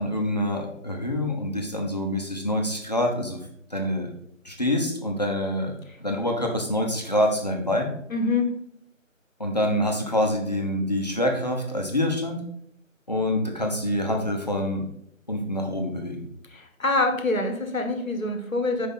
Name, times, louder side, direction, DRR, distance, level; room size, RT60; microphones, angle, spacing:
voice 1, 0.0-3.4 3.7-4.1 4.4-5.7 6.0-7.9 9.4-12.4 13.1-14.9 15.3-16.2, left 1 dB, 30° left, 1 dB, 0.8 m, -26 dB
voice 2, 8.1-8.5 16.5-18.9, left 2 dB, 80° left, 5 dB, 1.4 m, -25 dB
5.5 x 4.7 x 4.2 m, 0.73 s
figure-of-eight pair, 165°, 40 cm